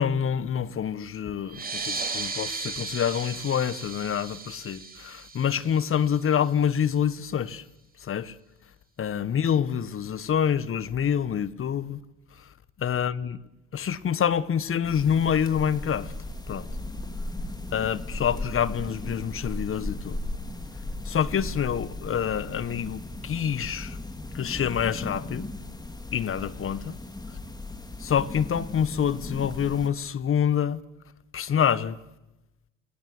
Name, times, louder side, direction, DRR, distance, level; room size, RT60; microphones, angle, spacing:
voice 1, 0.0-7.6 8.0-8.4 9.0-12.0 12.8-13.4 13.7-16.1 16.5-16.7 17.7-20.2 21.0-24.0 24.3-25.5 26.1-27.0 28.0-30.8 31.3-32.0, left 8 dB, 40° left, 1.4 m, -26 dB
sound 1, 1.5-6.6, right 4 dB, 25° right, 3.9 m, -36 dB
sound 2, 14.8-29.9, left 2 dB, 10° left, 3.0 m, -37 dB
29.0 x 19.0 x 8.0 m
hypercardioid pair, 70°, 34 cm